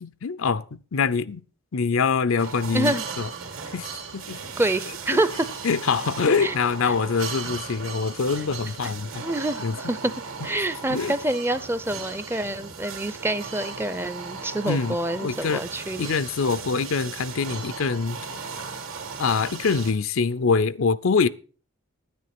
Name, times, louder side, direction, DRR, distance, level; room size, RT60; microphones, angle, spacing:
voice 1, 0.0-1.4 1.7-3.3 3.7-4.4 5.6-9.3 9.6-9.8 10.9-11.1 14.7-15.6 16.0-18.2 19.2-21.3, left 5 dB, 70° left, 0.6 m, -24 dB
sound 1, 2.4-19.9, right 5 dB, 75° right, 2.5 m, -37 dB
voice 2, 4.6-5.5 6.4-6.5 6.8-6.9 9.2-10.1 10.4-16.1, right 1 dB, 10° right, 0.5 m, -27 dB
10.0 x 9.5 x 5.8 m
head